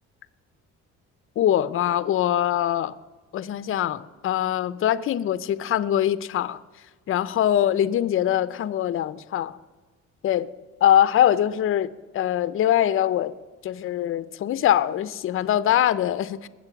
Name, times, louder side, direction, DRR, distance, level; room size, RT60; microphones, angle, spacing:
voice 1, 1.4-2.9 3.3-6.6 7.1-9.6 10.2-10.5 10.8-13.3 13.6-16.5, left 11 dB, 45° left, 0.6 m, -23 dB
20.5 x 7.6 x 5.9 m
cardioid pair, 130°, 30 cm